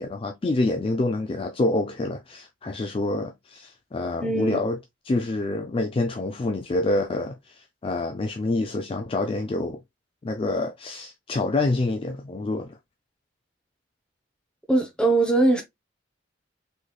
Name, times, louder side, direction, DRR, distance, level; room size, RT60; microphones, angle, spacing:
voice 1, 0.0-4.8 5.1-9.8 10.2-12.8, left 2 dB, 25° left, 0.3 m, -27 dB
voice 2, 4.2-4.6 14.7-15.6, right 2 dB, 5° left, 0.8 m, -21 dB
3.8 x 3.2 x 2.2 m
head